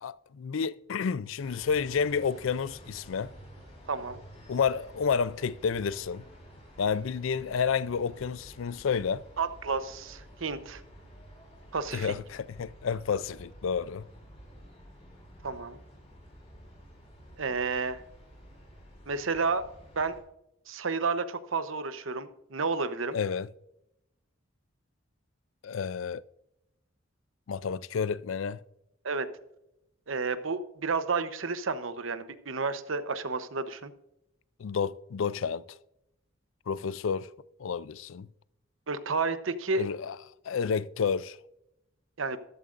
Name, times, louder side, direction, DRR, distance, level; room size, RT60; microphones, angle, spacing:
voice 1, 0.0-3.3 4.5-6.2 6.8-9.2 11.9-14.0 23.1-23.5 25.6-26.2 27.5-28.6 34.6-35.8 36.7-37.3 37.6-38.3 39.8-40.1 40.5-41.4, left 6 dB, 75° left, 0.4 m, -30 dB
sound 1, 1.4-20.2, equal, 30° left, 4.1 m, -51 dB
voice 2, 3.9-4.2 9.4-10.8 11.7-12.1 15.4-15.8 17.4-18.0 19.1-19.6 20.0-20.1 20.7-23.2 29.0-29.3 30.1-33.9 38.9-39.9 42.2-42.4, right 4 dB, 75° right, 0.9 m, -31 dB
14.0 x 12.5 x 2.5 m
head